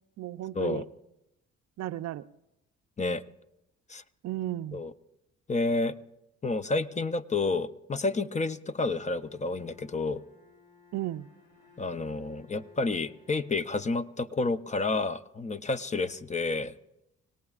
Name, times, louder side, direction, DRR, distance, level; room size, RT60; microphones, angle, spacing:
voice 1, 0.2-0.9 1.8-2.3 4.2-4.8 10.9-11.3, right 14 dB, 60° right, 13 dB, 0.5 m, -34 dB
voice 2, 5.5-5.9 6.4-10.2 11.8-16.7, left 3 dB, 25° left, 12 dB, 0.6 m, -30 dB
Bowed string instrument, 8.9-14.8, left 5 dB, 70° left, 7.4 m, -60 dB
26.0 x 18.0 x 2.4 m, 0.89 s
cardioid pair, 90°, 30 cm